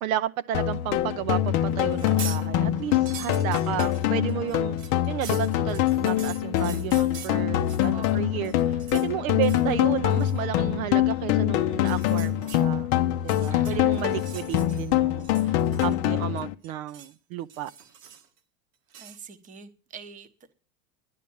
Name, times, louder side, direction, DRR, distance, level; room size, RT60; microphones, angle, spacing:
voice 1, 0.0-4.8 5.1-12.9 13.2-17.7, right 12 dB, 60° right, 0.7 m, -32 dB
sound 1, 0.5-16.5, left 12 dB, 35° left, 0.6 m, -24 dB
sound 2, 1.9-2.4 2.8-8.1 8.4-9.1 9.4-9.7 10.1-10.4 11.7-12.6 13.2-14.9 15.2-16.1 16.4-17.1 17.5-18.4 18.9-19.2, right 8 dB, 90° right, 1.9 m, -43 dB
voice 2, 7.9-8.6 13.5-14.1 19.0-20.5, right 5 dB, 15° right, 0.9 m, -45 dB
11.0 x 11.0 x 7.0 m
supercardioid pair, 160°, 46 cm